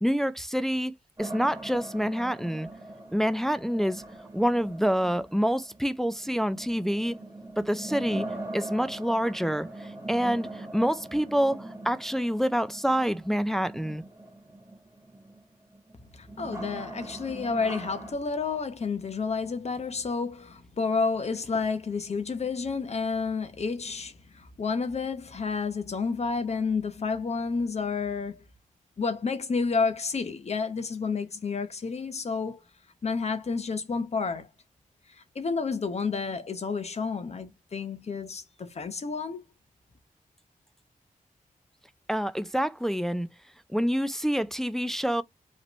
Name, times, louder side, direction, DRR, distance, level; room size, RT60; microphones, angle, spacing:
voice 1, 0.0-2.7 3.1-4.0 4.3-7.2 7.6-8.3 8.5-14.0 42.1-43.3 43.7-45.2, equal, 5° left, 0.4 m, -27 dB
sound 1, 1.2-18.1, right 2 dB, 20° right, 2.5 m, -41 dB
voice 2, 16.1-28.4 29.0-32.6 33.0-34.5 35.1-39.4, left 4 dB, 50° left, 0.9 m, -30 dB
5.1 x 3.1 x 3.0 m
wide cardioid pair, 145°, 14 cm